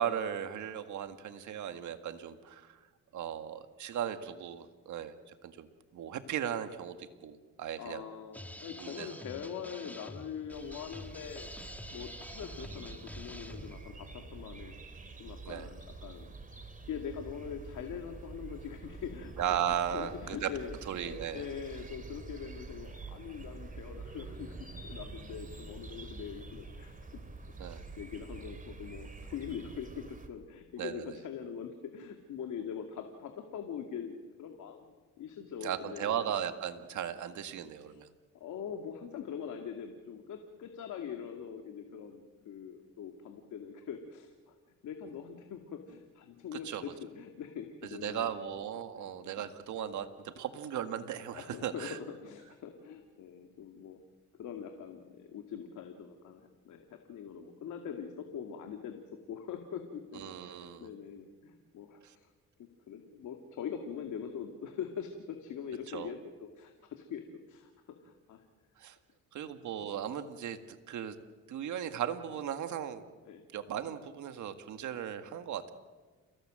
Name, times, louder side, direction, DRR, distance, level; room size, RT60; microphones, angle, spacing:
voice 1, 0.0-2.8 3.1-8.0 8.8-9.1 15.5-15.7 19.4-20.5 20.9-21.4 27.6-27.8 30.8-31.2 35.6-38.1 46.5-46.8 47.8-50.1 50.4-52.0 60.1-60.9 62.0-62.1 65.9-66.1 68.8-69.0 69.3-70.6 70.9-71.2 71.5-73.0 73.5-75.7, right 9 dB, 75° right, 8 dB, 1.9 m, -37 dB
voice 2, 7.8-11.5 11.9-14.7 15.2-16.3 16.8-20.7 21.0-24.5 24.8-27.2 27.6-36.1 37.9-38.0 38.3-44.3 44.8-48.3 48.7-49.1 51.3-54.0 54.4-62.3 62.6-67.7 68.0-68.4 69.4-69.5 73.3-73.4, left 7 dB, 75° left, 4 dB, 2.3 m, -43 dB
sound 1, 8.3-13.9, left 1 dB, 5° left, 1.8 m, -47 dB
sound 2, 10.5-30.3, right 3 dB, 25° right, 3.0 m, -47 dB
29.5 x 17.5 x 7.7 m, 1.4 s
cardioid pair, 90°, 30 cm